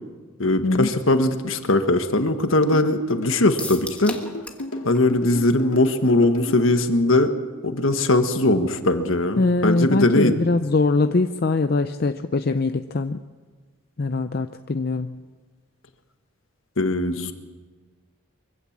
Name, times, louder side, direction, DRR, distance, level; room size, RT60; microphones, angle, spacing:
voice 1, 0.4-4.2 4.8-7.3 7.6-10.3 16.8-17.3, left 2 dB, 65° left, 7 dB, 1.5 m, -20 dB
sound 1, 2.7-6.7, left 2 dB, 80° left, 2.2 m, -33 dB
sound 2, 3.6-4.7 5.0-5.1 5.4-5.5, left 2 dB, 5° left, 1.4 m, -35 dB
voice 2, 9.4-13.2 14.0-15.2, left 3 dB, 45° left, 9 dB, 0.5 m, -22 dB
23.5 x 16.0 x 7.3 m, 1.4 s
head